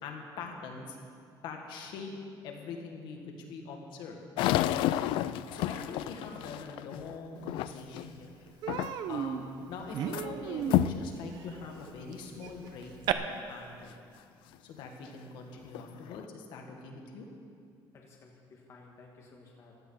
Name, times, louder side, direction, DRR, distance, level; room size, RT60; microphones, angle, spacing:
voice 1, 0.0-1.0 1.4-2.1 2.4-4.2 5.5-8.3 9.1-9.4 9.7-12.9 13.5-14.0 14.6-17.3, left 4 dB, 65° left, 2 dB, 1.8 m, -43 dB
sound 1, 4.4-8.1 8.7-9.2 9.6-10.2 10.7-11.0 11.7-11.8 12.5-12.6 15.0-15.1 15.6-16.2, left 13 dB, 80° left, 0.4 m, -31 dB
Human voice, 7.6-7.7 8.0-8.2 8.6-13.1, right 10 dB, 60° right, 0.7 m, -36 dB
voice 2, 17.9-19.8, left 3 dB, 35° left, -1 dB, 1.5 m, -55 dB
16.0 x 11.5 x 5.7 m, 2.3 s
cardioid pair, 180°, 8 cm